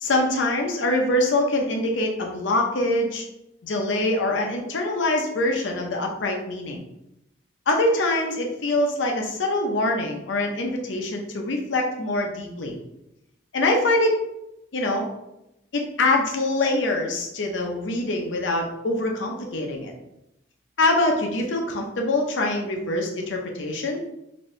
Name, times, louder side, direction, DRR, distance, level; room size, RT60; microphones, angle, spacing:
voice 1, 0.0-3.2 3.6-6.8 7.7-12.8 13.5-14.2 14.7-15.1 15.7-19.9 20.8-24.0, left 2 dB, 90° left, 1 dB, 0.7 m, -24 dB
4.2 x 2.6 x 3.2 m, 0.85 s
head